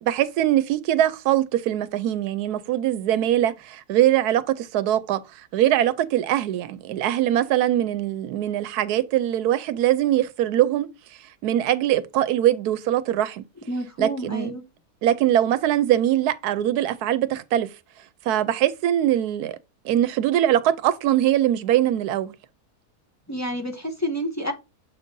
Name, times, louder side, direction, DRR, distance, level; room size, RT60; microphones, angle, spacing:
voice 1, 0.0-10.9 11.4-13.4 14.0-14.5 15.0-17.7 18.3-19.6 19.8-22.3, right 12 dB, 85° right, 1.1 m, -22 dB
voice 2, 13.7-14.6 23.3-24.5, equal, 15° left, 0.6 m, -29 dB
7.4 x 2.6 x 5.2 m
omnidirectional pair, 1.6 m